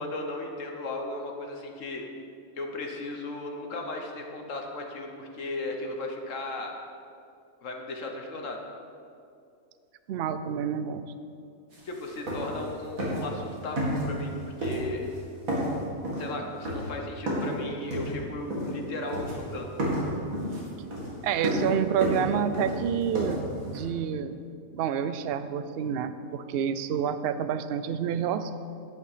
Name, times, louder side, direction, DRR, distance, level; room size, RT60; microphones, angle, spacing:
voice 1, 0.0-2.1 2.6-6.7 7.6-8.6 11.8-15.0 16.2-19.7, left 2 dB, 65° left, 2 dB, 1.4 m, -36 dB
voice 2, 10.1-11.0 21.2-24.4 24.7-28.5, right 8 dB, 65° right, 11 dB, 0.6 m, -28 dB
sound 1, 11.7-11.8 12.1-12.7 13.0-13.4 13.8-14.3 14.6-15.2 15.5-17.6 17.9-18.8 19.1-19.5 19.8-23.8, equal, 80° right, 2.6 m, -31 dB
10.5 x 8.2 x 5.0 m, 2.5 s
omnidirectional pair, 1.4 m